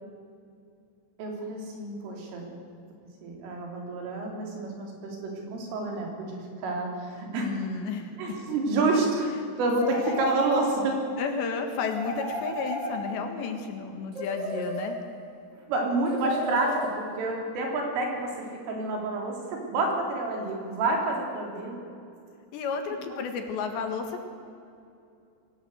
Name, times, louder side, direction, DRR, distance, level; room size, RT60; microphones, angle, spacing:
voice 1, 1.2-2.5 3.2-7.6 8.2-9.3 9.6-11.0 15.7-21.8, right 2 dB, 80° right, 0 dB, 6.1 m, -29 dB
voice 2, 7.4-8.2 10.0-10.2 11.2-15.0 22.5-24.3, left 5 dB, 70° left, 5 dB, 3.6 m, -32 dB
sound 1, 9.8-11.0 11.9-13.4 14.1-15.3 16.1-17.3, equal, 25° right, 6.1 m, -34 dB
23.0 x 17.0 x 7.9 m, 2.5 s
omnidirectional pair, 5.7 m